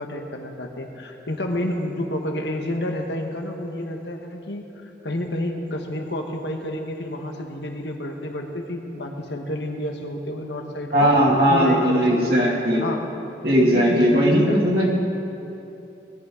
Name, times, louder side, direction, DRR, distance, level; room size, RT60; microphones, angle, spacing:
voice 1, 0.0-11.1 11.5-13.0 13.5-14.8, left 1 dB, 75° left, 3 dB, 1.4 m, -30 dB
voice 2, 10.9-12.8 13.4-14.9, equal, 55° right, -5 dB, 2.5 m, -18 dB
20.5 x 12.0 x 3.9 m, 2.8 s
head